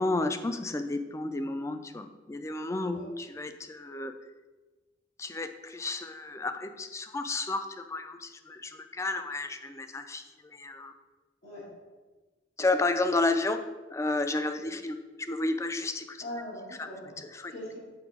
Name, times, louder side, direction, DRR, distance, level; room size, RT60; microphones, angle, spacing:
voice 1, 0.0-4.1 5.2-10.9 12.6-13.6 13.9-16.2 16.8-16.9 17.2-17.5, left 2 dB, 15° left, 9 dB, 0.3 m, -32 dB
voice 2, 16.2-17.1 17.5-17.8, left 1 dB, 80° left, -9 dB, 2.0 m, -40 dB
7.1 x 3.8 x 4.9 m, 1.3 s
head